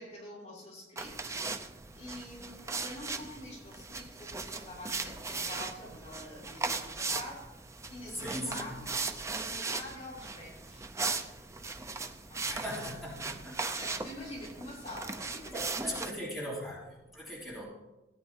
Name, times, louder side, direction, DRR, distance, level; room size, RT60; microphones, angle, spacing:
voice 1, 0.0-1.7 1.9-7.4 7.9-10.8 12.3-12.6 13.8-15.9, left 1 dB, 35° left, -5 dB, 3.0 m, -46 dB
sound 1, 1.0-16.1, right 4 dB, 15° right, 0.5 m, -38 dB
voice 2, 8.2-8.8 12.4-13.6 15.5-17.6, equal, ahead, -7 dB, 3.3 m, -39 dB
17.5 x 9.2 x 2.9 m, 1.0 s
head